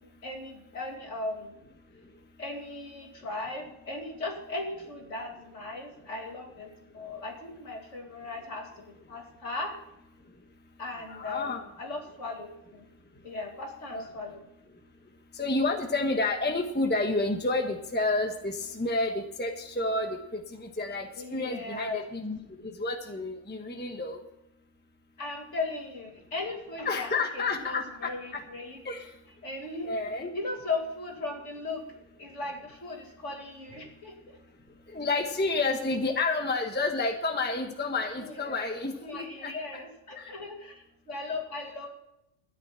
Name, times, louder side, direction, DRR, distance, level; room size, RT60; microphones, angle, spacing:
voice 1, 0.0-1.5 2.4-6.7 6.9-9.7 10.8-12.9 13.2-14.4 21.2-22.0 25.2-28.8 29.4-31.8 32.2-34.4 38.2-38.5 39.0-41.9, left 3 dB, 60° left, 1 dB, 2.8 m, -37 dB
voice 2, 11.1-11.6 13.9-14.0 15.3-22.4 22.8-24.2 26.8-28.4 28.8-29.0 29.8-30.3 34.9-39.5 40.1-40.2, left 3 dB, 10° left, 4 dB, 1.1 m, -30 dB
13.0 x 10.0 x 5.7 m, 0.86 s
omnidirectional pair, 1.4 m